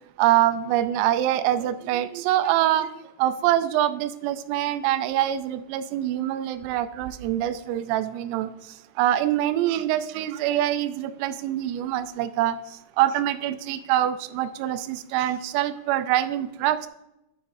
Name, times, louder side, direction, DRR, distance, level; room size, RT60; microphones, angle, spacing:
voice 1, 0.2-2.9 3.2-16.9, right 12 dB, 85° right, 13 dB, 3.2 m, -25 dB
9.6 x 9.2 x 2.6 m, 0.90 s
omnidirectional pair, 5.9 m